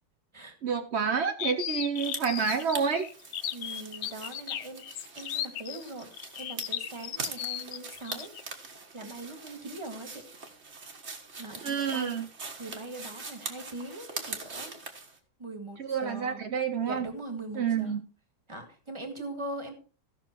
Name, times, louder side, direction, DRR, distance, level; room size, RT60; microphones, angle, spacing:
voice 1, 0.6-3.0 11.6-12.3 15.8-17.1 17.6-18.0, right 6 dB, 65° right, 7 dB, 0.6 m, -29 dB
sound 1, 1.4-8.4, left 11 dB, 85° left, 0.7 m, -36 dB
sound 2, 2.0-15.2, right 4 dB, 35° right, 1.6 m, -43 dB
voice 2, 3.5-8.3 8.9-10.3 11.4-12.1 12.6-14.7 15.4-16.4 16.8-18.0 18.5-19.7, right 2 dB, 15° right, 6 dB, 1.7 m, -41 dB
15.5 x 6.2 x 4.4 m, 0.38 s
omnidirectional pair, 2.2 m